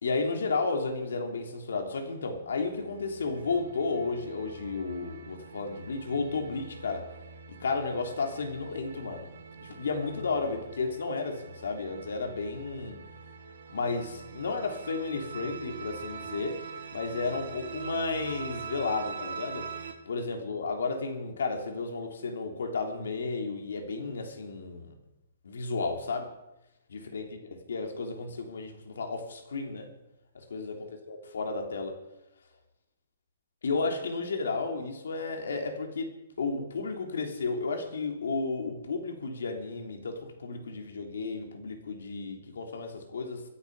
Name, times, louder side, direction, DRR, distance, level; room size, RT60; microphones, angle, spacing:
voice 1, 0.0-7.0 7.5-13.0 13.7-16.6 16.9-19.7 20.1-24.9 25.4-26.3 26.9-29.9 30.3-32.0 33.6-36.1 36.4-43.4, left 4 dB, 85° left, 4 dB, 3.2 m, -33 dB
sound 1, 2.6-19.9, right 6 dB, 50° right, 2.2 m, -43 dB
24.5 x 8.5 x 5.4 m, 0.94 s
hypercardioid pair, 180°, 0 cm